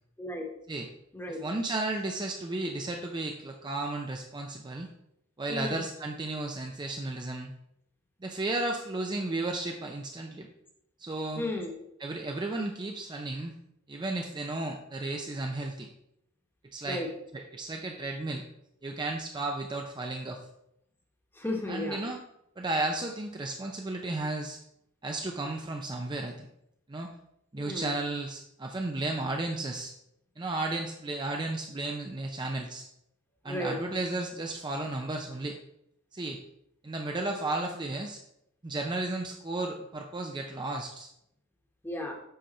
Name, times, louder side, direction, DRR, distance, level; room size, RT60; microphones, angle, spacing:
voice 1, 0.2-0.5 1.1-1.4 5.5-5.8 11.4-11.7 16.8-17.1 21.3-22.0 27.6-27.9 33.4-33.8 41.8-42.1, left 1 dB, 10° left, 1 dB, 1.2 m, -34 dB
voice 2, 1.4-4.9 5.4-7.5 8.2-10.5 11.0-11.4 12.0-13.5 13.9-15.9 16.6-17.0 17.3-18.4 18.8-20.4 21.7-22.2 22.6-24.6 25.0-26.5 26.9-27.1 27.5-29.9 30.4-32.9 33.4-35.6 36.1-36.4 36.8-38.2 38.6-41.1, right 2 dB, 20° right, 2 dB, 0.5 m, -33 dB
7.9 x 5.1 x 4.2 m, 0.78 s
head